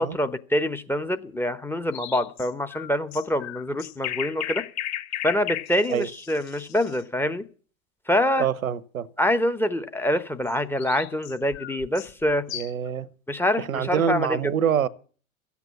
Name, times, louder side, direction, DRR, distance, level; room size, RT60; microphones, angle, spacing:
voice 1, 0.0-4.6 5.2-7.4 8.1-8.5 9.2-12.5 13.3-14.4, left 1 dB, 5° left, 0.8 m, -25 dB
sound 1, 1.9-7.0 10.5-12.9, left 12 dB, 40° left, 1.4 m, -35 dB
voice 2, 8.4-9.1 12.5-13.1 13.6-14.9, right 8 dB, 85° right, 0.9 m, -25 dB
13.5 x 8.3 x 8.1 m
hypercardioid pair, 95°, 41 cm